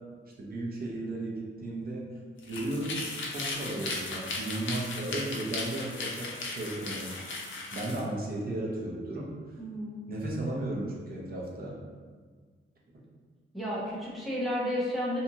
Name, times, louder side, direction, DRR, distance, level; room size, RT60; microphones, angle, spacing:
voice 1, 0.4-2.1 2.5-7.1 7.7-9.3 10.1-11.7, right 2 dB, 45° right, -4 dB, 0.6 m, -35 dB
sound 1, 2.4-8.0, left 3 dB, 65° left, 0.5 m, -36 dB
voice 2, 9.6-10.2 13.5-15.2, equal, ahead, -7 dB, 0.5 m, -32 dB
2.7 x 2.4 x 2.7 m, 1.5 s
wide cardioid pair, 175°, 21 cm